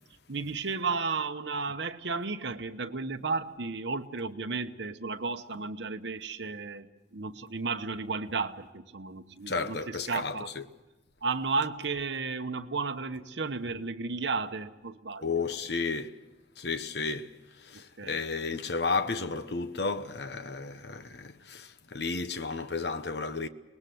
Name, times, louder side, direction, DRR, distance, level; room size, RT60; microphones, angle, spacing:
voice 1, 0.3-10.5 11.2-15.4 18.0-18.2, right 4 dB, 75° right, 1.0 m, -33 dB
voice 2, 9.5-10.6 15.2-16.2 16.6-17.3 17.6-23.5, left 4 dB, 65° left, 1.0 m, -33 dB
24.5 x 20.0 x 7.8 m
head